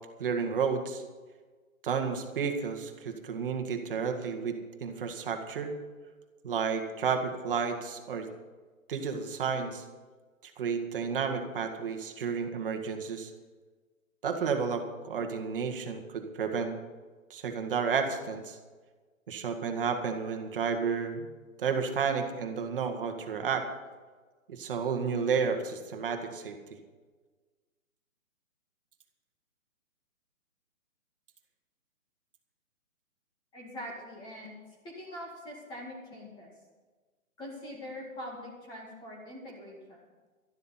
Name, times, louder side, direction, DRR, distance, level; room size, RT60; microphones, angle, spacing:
voice 1, 0.2-1.0 1.8-5.7 6.4-8.3 8.9-9.9 10.4-13.3 14.2-16.8 17.3-18.6 19.3-21.3 21.6-23.7 24.5-26.6, right 6 dB, 40° right, 5 dB, 1.8 m, -31 dB
voice 2, 33.5-34.6 34.8-36.5 37.4-40.0, left 1 dB, 10° left, -1 dB, 2.1 m, -43 dB
12.5 x 12.0 x 5.8 m, 1.4 s
hypercardioid pair, 160°, 42 cm